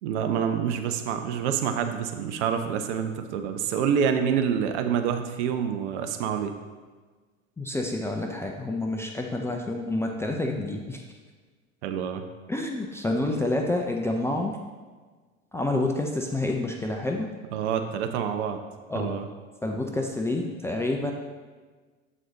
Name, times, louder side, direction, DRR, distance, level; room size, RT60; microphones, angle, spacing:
voice 1, 0.0-6.5 11.8-12.2 17.5-18.6 18.9-19.3, right 7 dB, 60° right, 7 dB, 0.8 m, -27 dB
voice 2, 7.6-11.0 12.5-14.6 15.5-17.3 18.9-19.1 19.6-21.1, left 2 dB, 5° left, 1 dB, 0.4 m, -28 dB
7.7 x 4.2 x 3.8 m, 1.4 s
hypercardioid pair, 85°, 39 cm